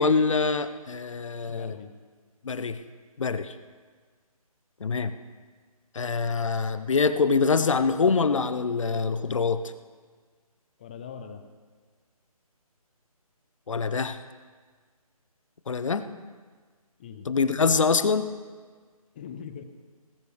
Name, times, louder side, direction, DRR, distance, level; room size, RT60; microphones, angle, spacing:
voice 1, 0.0-1.8 2.4-2.8 3.2-3.5 4.8-5.1 5.9-9.7 13.7-14.2 15.7-16.1 17.3-18.3, left 4 dB, 55° left, 12 dB, 0.8 m, -24 dB
voice 2, 1.5-1.9 10.8-11.4 17.0-17.3 19.1-19.6, left 7 dB, 15° left, 8 dB, 0.6 m, -41 dB
19.0 x 13.0 x 3.4 m, 1.5 s
figure-of-eight pair, 155°, 19 cm